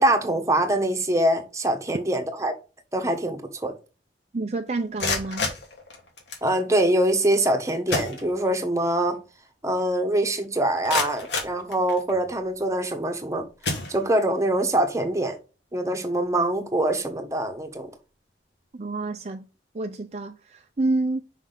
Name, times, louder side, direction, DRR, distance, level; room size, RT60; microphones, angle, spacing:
voice 1, 0.0-2.6 2.9-3.7 6.4-9.2 9.6-13.5 13.9-15.4 15.7-17.9, right 1 dB, 15° right, 1.2 m, -24 dB
voice 2, 4.3-5.5 18.7-19.5 19.7-21.2, right 2 dB, 40° right, 0.5 m, -28 dB
sound 1, 4.8-6.5 7.5-7.6 7.9-8.8 9.1-9.2 9.8-9.9 10.4-12.3 12.9-13.2 13.6-14.4, left 3 dB, 85° left, 2.6 m, -31 dB
6.1 x 5.4 x 3.9 m
head